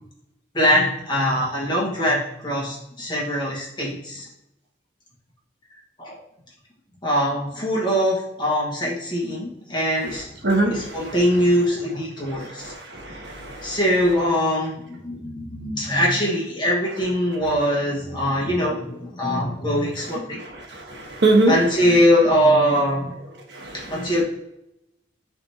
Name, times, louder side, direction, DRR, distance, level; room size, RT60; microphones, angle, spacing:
voice 1, 0.5-4.3 6.0-6.1 7.0-10.3 10.6-12.7 13.6-20.4 21.5-23.0 23.7-24.2, equal, 25° left, -4 dB, 1.6 m, -22 dB
voice 2, 13.0-13.8 20.9-21.5 23.6-24.0, right 2 dB, 60° right, 0 dB, 1.4 m, -21 dB
9.4 x 3.5 x 2.9 m, 0.84 s
head